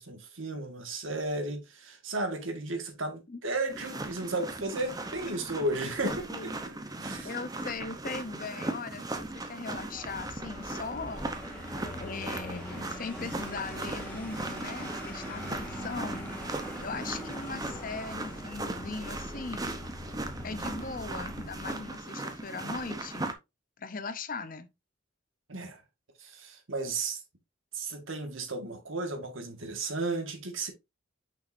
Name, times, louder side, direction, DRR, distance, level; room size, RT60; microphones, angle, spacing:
voice 1, 0.0-6.1 6.6-7.3 25.5-25.8 26.2-27.2 27.7-30.7, right 2 dB, 85° right, 1.7 m, -34 dB
sound 1, 3.7-23.3, right 2 dB, 20° right, 0.8 m, -38 dB
voice 2, 6.0-6.6 7.2-11.3 12.0-16.3 16.8-19.8 20.4-23.3 23.8-24.7, left 4 dB, 45° left, 0.7 m, -39 dB
Vehicle, 9.7-22.0, left 1 dB, 10° left, 2.1 m, -42 dB
6.3 x 5.8 x 2.6 m
head